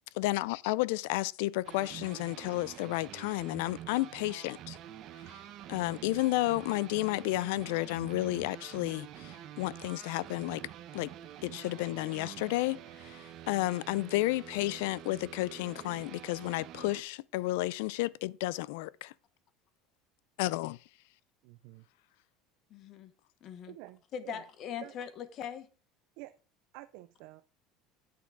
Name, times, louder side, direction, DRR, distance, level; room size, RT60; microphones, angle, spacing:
voice 1, 0.1-4.8 5.3-5.4 5.7-10.6 10.9-11.1 11.4-19.1 20.4-20.8, left 18 dB, 80° left, 0.3 m, -32 dB
sound 1, 1.6-17.0, right 11 dB, 40° right, 0.8 m, -47 dB
voice 2, 21.4-21.8 23.7-24.4 24.8-25.0 26.2-26.3 26.7-27.4, right 18 dB, 60° right, 0.4 m, -49 dB
voice 3, 22.7-23.1 23.4-23.7 24.1-25.7, left 8 dB, 35° left, 0.9 m, -41 dB
8.5 x 6.0 x 4.6 m
cardioid pair, 170°, 0 cm